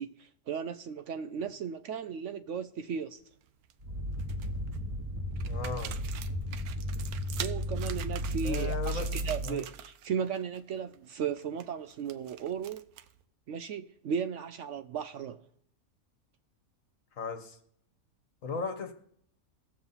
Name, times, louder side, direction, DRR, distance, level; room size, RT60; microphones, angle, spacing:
voice 1, 0.0-3.2 7.4-12.9 13.5-15.4, right 7 dB, 65° right, 0.8 m, -36 dB
sound 1, 3.2-3.7 4.1-4.8 5.4-10.1 10.3-10.6 10.9-13.2, right 10 dB, 90° right, 1.2 m, -45 dB
sound 2, 3.8-9.6, equal, 25° right, 1.4 m, -34 dB
voice 2, 5.5-6.0 8.4-9.1 9.4-9.7 17.2-17.6 18.4-18.9, left 4 dB, 65° left, 1.6 m, -36 dB
19.0 x 7.3 x 4.0 m
omnidirectional pair, 1.5 m